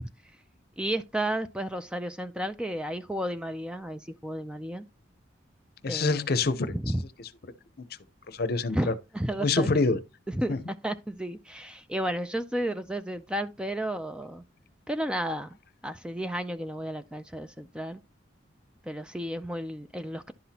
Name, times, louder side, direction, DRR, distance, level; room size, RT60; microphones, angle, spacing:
voice 1, 0.8-4.9 5.9-6.3 6.7-7.0 8.7-9.7 10.3-14.4 14.9-15.6 15.8-18.0 18.8-20.3, right 1 dB, 5° right, 0.4 m, -32 dB
voice 2, 5.8-6.8 8.3-8.9 9.4-10.0 10.5-10.6, left 3 dB, 55° left, 0.7 m, -25 dB
11.0 x 5.8 x 2.8 m
head